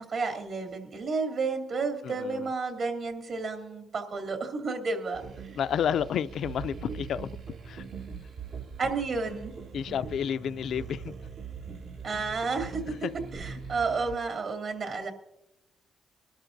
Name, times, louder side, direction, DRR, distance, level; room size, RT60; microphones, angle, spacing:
voice 1, 0.0-5.2 5.5-5.6 8.8-9.5 12.0-12.9 13.3-15.1, right 4 dB, 60° right, 2.6 m, -31 dB
voice 2, 2.0-2.5 5.6-7.3 7.7-7.9 9.7-11.1 13.0-13.1, left 8 dB, 70° left, 0.3 m, -30 dB
sound 1, 5.1-14.2, right 5 dB, 85° right, 2.2 m, -42 dB
23.5 x 12.5 x 2.6 m
cardioid pair, 110°, 0 cm